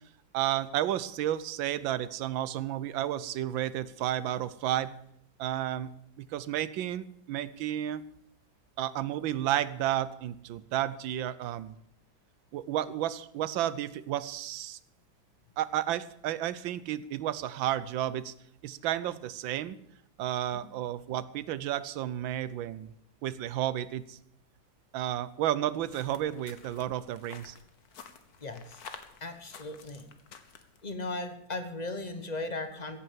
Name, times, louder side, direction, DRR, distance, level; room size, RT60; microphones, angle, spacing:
voice 1, 0.3-4.9 5.4-5.9 6.2-8.0 8.8-11.7 12.5-14.8 15.6-18.3 18.6-19.8 20.2-22.9 23.2-24.2 24.9-27.5, right 12 dB, 85° right, 16 dB, 1.5 m, -32 dB
sound 1, 25.8-30.9, left 6 dB, 55° left, 1.6 m, -51 dB
voice 2, 28.4-28.8 29.2-30.1 30.8-33.0, left 2 dB, 25° left, 8 dB, 1.1 m, -37 dB
15.5 x 8.6 x 7.4 m, 0.72 s
omnidirectional pair, 2.1 m